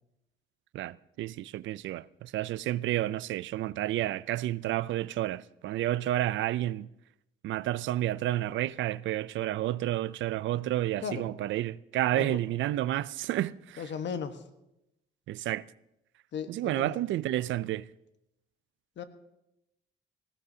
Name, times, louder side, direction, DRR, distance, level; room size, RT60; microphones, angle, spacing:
voice 1, 0.7-6.9 7.4-13.8 15.3-15.6 16.5-17.9, right 14 dB, 75° right, 0.4 m, -30 dB
voice 2, 13.8-14.4 16.3-17.1 19.0-19.1, left 6 dB, 65° left, 1.3 m, -36 dB
19.0 x 16.0 x 2.8 m
cardioid pair, 90°, 20 cm